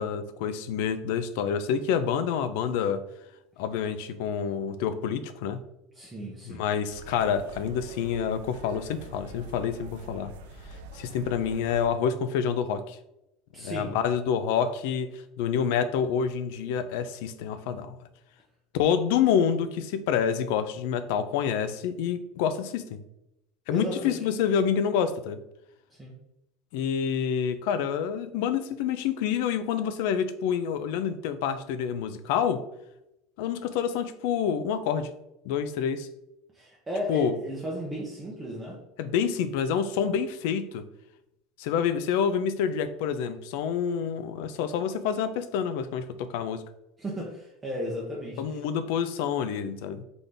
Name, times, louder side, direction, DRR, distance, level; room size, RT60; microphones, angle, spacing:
voice 1, 0.0-3.0 3.6-5.6 6.5-10.3 10.9-13.0 13.6-18.0 18.7-23.0 23.7-25.4 26.7-32.6 33.4-35.1 35.4-36.1 37.1-37.3 39.0-40.8 41.6-46.6 48.4-50.0, left 7 dB, 70° left, 12 dB, 0.4 m, -27 dB
voice 2, 5.9-6.6 13.5-13.9 23.7-24.2 25.9-26.2 36.5-38.8 47.0-48.6, equal, 10° right, -4 dB, 0.7 m, -34 dB
sound 1, 6.9-11.9, right 3 dB, 85° right, 0.4 m, -45 dB
3.9 x 3.7 x 3.4 m, 0.85 s
cardioid pair, 160°, 0 cm